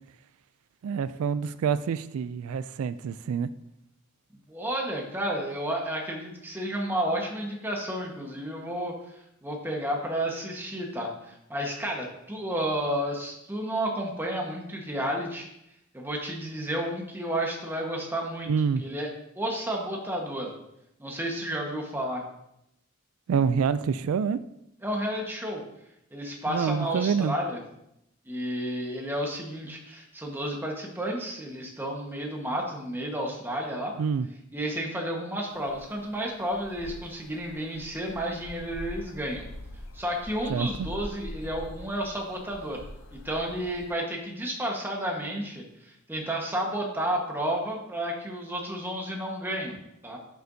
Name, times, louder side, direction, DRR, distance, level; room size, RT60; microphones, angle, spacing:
voice 1, 0.8-3.5 18.5-18.8 23.3-24.4 26.5-27.3 34.0-34.3 40.5-40.9, right 6 dB, 85° right, 15 dB, 0.3 m, -27 dB
voice 2, 4.5-15.5 15.9-18.5 18.8-19.1 19.4-20.5 21.0-22.2 24.8-25.6 26.1-27.6 28.2-33.9 34.5-39.4 39.9-42.8 43.1-49.7 50.0-50.2, right 1 dB, 10° right, 0 dB, 1.3 m, -31 dB
sound 1, 35.4-43.9, left 1 dB, 70° left, 0.7 m, -44 dB
11.0 x 6.8 x 2.7 m, 0.82 s
head